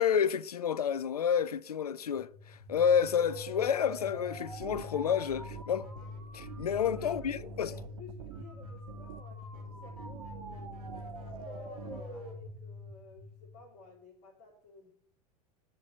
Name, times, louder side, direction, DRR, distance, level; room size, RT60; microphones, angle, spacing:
voice 1, 0.0-5.9 6.3-7.7, left 8 dB, 75° left, 0.4 m, -29 dB
sound 1, 2.1-13.9, left 2 dB, 85° right, 4.2 m, -45 dB
sound 2, 4.5-12.2, right 15 dB, 60° right, 0.5 m, -49 dB
voice 2, 6.7-10.8 11.2-14.9, left 2 dB, 45° left, 3.0 m, -53 dB
9.7 x 4.5 x 6.4 m
figure-of-eight pair, 85°, 19 cm